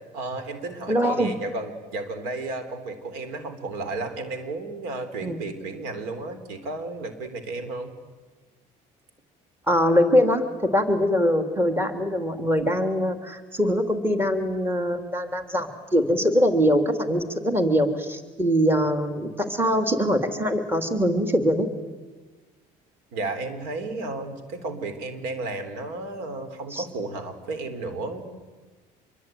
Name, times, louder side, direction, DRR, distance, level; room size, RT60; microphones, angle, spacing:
voice 1, 0.1-7.9 23.1-28.2, right 2 dB, 85° right, 10 dB, 3.8 m, -33 dB
voice 2, 0.9-1.3 5.2-5.4 9.7-10.5 10.7-21.7 26.7-26.8, equal, 15° right, 6 dB, 3.1 m, -23 dB
26.5 x 23.0 x 9.3 m, 1.3 s
supercardioid pair, 90°, 16 cm